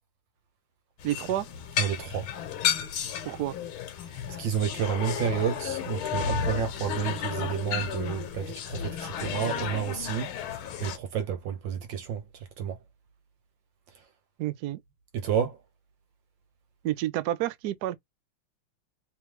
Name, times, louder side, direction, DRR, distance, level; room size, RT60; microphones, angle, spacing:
sound 1, 1.0-11.0, left 8 dB, 75° left, 1.6 m, -33 dB
voice 1, 1.0-1.5 3.2-3.6 14.4-14.8 16.8-18.0, right 14 dB, 85° right, 0.8 m, -29 dB
voice 2, 1.8-2.3 4.4-10.3 10.8-12.2 12.6-12.8 15.1-15.6, right 8 dB, 70° right, 1.3 m, -30 dB
3.4 x 3.2 x 3.1 m
omnidirectional pair, 2.4 m